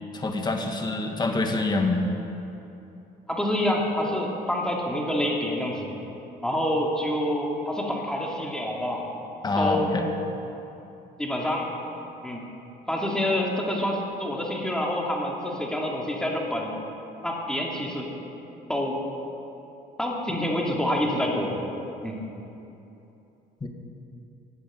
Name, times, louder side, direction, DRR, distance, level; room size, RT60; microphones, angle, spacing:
voice 1, 0.1-2.0 9.4-10.1 23.6-23.7, left 2 dB, 25° left, 3 dB, 1.8 m, -26 dB
voice 2, 3.3-5.9 6.4-9.0 9.6-9.9 11.2-11.7 12.2-12.4 12.9-16.7 17.2-18.1 18.7-19.0 20.0-21.6 22.0-22.2, left 1 dB, 5° left, -2 dB, 2.6 m, -27 dB
14.5 x 8.5 x 9.1 m, 2.9 s
cardioid pair, 110°, 17 cm